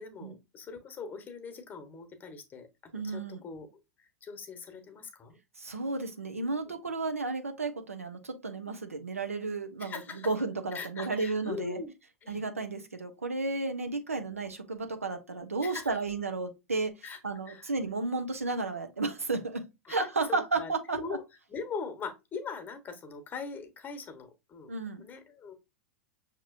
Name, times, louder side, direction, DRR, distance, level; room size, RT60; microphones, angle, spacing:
voice 1, 0.0-3.7 4.0-5.4 6.6-6.7 9.8-10.3 10.7-11.9 12.2-12.4 15.6-15.9 17.0-17.2 17.5-17.7 19.8-20.0 20.3-21.2 21.5-24.7 25.0-25.5, left 5 dB, 25° left, 1.1 m, -41 dB
voice 2, 2.9-3.4 5.6-11.8 12.3-21.0 24.7-25.1, right 3 dB, 85° right, 0.7 m, -33 dB
5.9 x 2.9 x 2.5 m
figure-of-eight pair, 95°, 7 cm